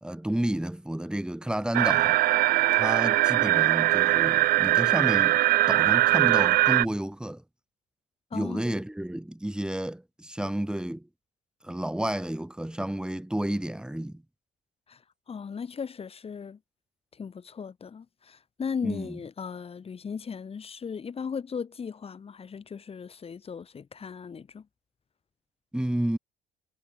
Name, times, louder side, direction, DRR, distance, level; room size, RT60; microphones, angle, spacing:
voice 1, 0.0-2.2 2.7-5.4 5.7-7.4 8.3-11.1 11.6-14.2 18.8-19.2 25.7-26.2, right 1 dB, 5° right, 2.3 m, -31 dB
sound 1, 1.7-6.9, right 16 dB, 65° right, 0.4 m, -21 dB
voice 2, 15.3-16.6 17.1-24.7, left 6 dB, 35° left, 7.7 m, -37 dB
cardioid pair, 110°, 17 cm